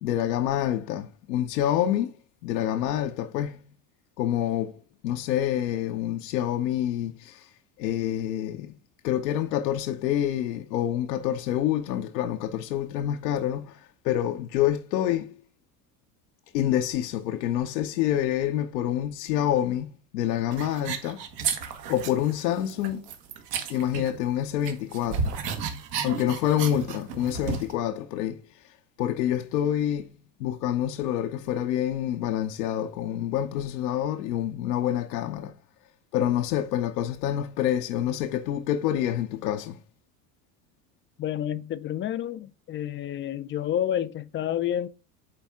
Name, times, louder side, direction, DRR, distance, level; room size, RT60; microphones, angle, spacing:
voice 1, 0.0-2.1 2.4-3.6 4.2-7.5 7.8-8.7 9.0-15.4 16.5-21.2 21.9-23.0 23.7-25.3 26.0-28.4 29.0-30.1 30.4-35.5 36.1-39.8, left 11 dB, 80° left, 0.8 m, -27 dB
sound 1, 20.5-22.3 22.6-24.4 24.6-27.7, right 6 dB, 80° right, 1.4 m, -32 dB
voice 2, 41.2-44.9, left 10 dB, 25° left, 0.4 m, -29 dB
8.8 x 3.5 x 3.6 m
hypercardioid pair, 85°, 49 cm